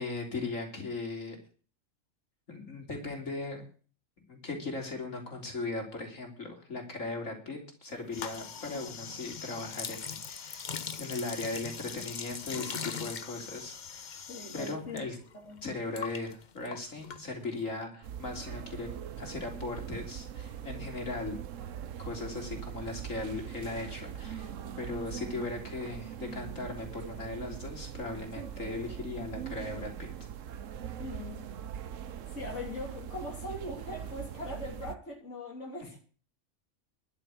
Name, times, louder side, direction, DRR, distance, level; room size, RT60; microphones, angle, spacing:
voice 1, 0.0-1.4 2.5-3.6 4.3-10.7 11.0-14.2 14.5-15.2 15.6-18.9 19.2-21.4 22.0-24.5 24.8-30.1 35.8-35.9, left 3 dB, 90° left, 3.8 m, -38 dB
sound 1, 8.1-15.0 15.3-17.7, left 6 dB, 40° left, 0.8 m, -41 dB
voice 2, 14.3-15.0 15.4-15.6 31.0-31.4 32.3-36.0, left 2 dB, 65° left, 3.3 m, -40 dB
sound 2, 18.0-35.0, right 9 dB, 80° right, 1.2 m, -41 dB
12.5 x 7.5 x 8.5 m
omnidirectional pair, 1.3 m